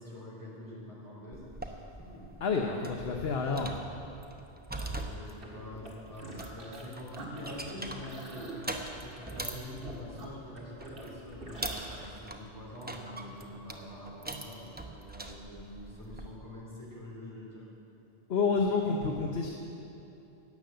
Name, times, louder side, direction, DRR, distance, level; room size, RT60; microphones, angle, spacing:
voice 1, 0.0-2.4 2.7-2.9 4.8-17.7, left 1 dB, 15° left, -6 dB, 3.4 m, -45 dB
sound 1, 1.3-16.4, right 1 dB, 10° right, 0.7 m, -43 dB
voice 2, 2.4-3.8 18.3-19.5, left 4 dB, 70° left, 1 dB, 1.1 m, -29 dB
sound 2, 5.3-6.8 7.1-12.0, right 2 dB, 60° right, 2.0 m, -46 dB
12.0 x 9.2 x 7.7 m, 2.9 s
omnidirectional pair, 1.1 m